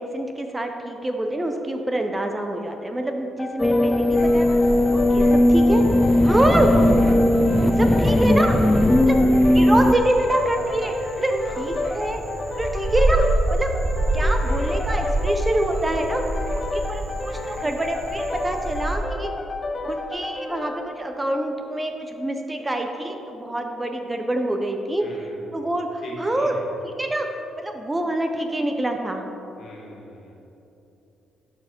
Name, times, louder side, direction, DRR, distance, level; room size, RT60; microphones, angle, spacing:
voice 1, 0.0-4.6 4.9-5.8 6.2-6.7 7.8-8.6 9.0-9.2 9.5-12.2 12.6-13.2 13.5-13.7 14.1-16.2 16.5-19.3 19.8-25.3 25.5-26.5 26.8-27.3 27.6-29.2, right 1 dB, 15° right, 4 dB, 0.7 m, -26 dB
sound 1, 3.4-20.8, left 2 dB, 30° left, 0.7 m, -31 dB
sound 2, 3.6-9.9, left 1 dB, 10° left, 0.3 m, -18 dB
Frog, 4.1-19.0, right 1 dB, 45° right, 1.1 m, -28 dB
voice 2, 25.0-25.6 26.0-26.7 29.6-30.3, equal, 65° left, -2 dB, 2.0 m, -41 dB
12.0 x 4.8 x 4.4 m, 3.0 s
cardioid pair, 90°, 0 cm